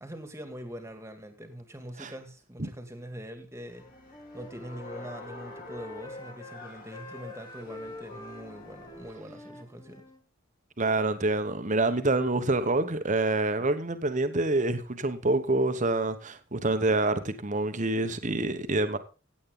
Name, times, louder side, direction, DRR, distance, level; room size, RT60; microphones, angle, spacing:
voice 1, 0.0-3.9 4.3-10.1, equal, 15° right, 1.9 m, -43 dB
sound 1, 3.7-9.1, left 2 dB, 45° left, 2.9 m, -47 dB
Wind instrument woodwind instrument, 3.8-6.6 6.9-10.2, left 2 dB, 20° left, 1.2 m, -47 dB
voice 2, 10.8-19.0, right 2 dB, 35° right, 1.1 m, -27 dB
16.0 x 8.6 x 3.9 m
head